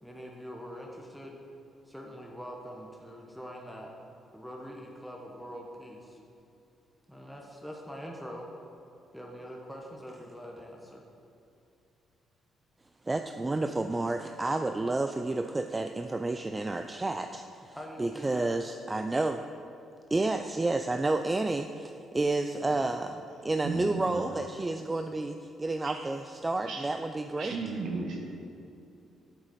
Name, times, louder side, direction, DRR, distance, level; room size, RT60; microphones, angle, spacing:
voice 1, 0.0-1.4 1.8-3.9 4.3-6.2 7.1-8.5 9.1-11.0 17.7-18.6, equal, ahead, -1 dB, 1.0 m, -43 dB
voice 2, 13.1-19.4 20.1-27.6, right 2 dB, 20° right, 6 dB, 0.3 m, -30 dB
voice 3, 23.6-24.2 25.8-26.0 26.7-26.9 27.4-28.2, right 4 dB, 75° right, 0 dB, 1.1 m, -35 dB
8.1 x 7.9 x 4.2 m, 2.7 s
cardioid pair, 90°, 0 cm